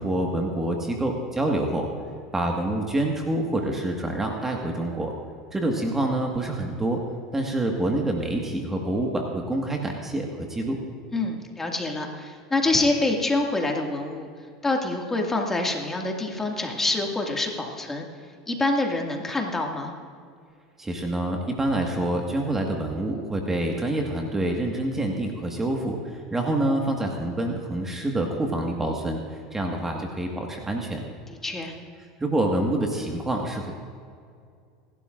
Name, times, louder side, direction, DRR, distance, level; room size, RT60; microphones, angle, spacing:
voice 1, 0.0-1.9 2.3-5.1 5.5-7.0 7.3-10.8 20.8-31.0 32.2-33.7, right 1 dB, 15° right, 1 dB, 1.7 m, -27 dB
voice 2, 11.1-14.3 14.6-18.0 18.5-19.9 31.4-31.8, left 2 dB, 15° left, 1 dB, 2.1 m, -26 dB
27.0 x 12.0 x 2.5 m, 2.2 s
hypercardioid pair, 85°, 2 cm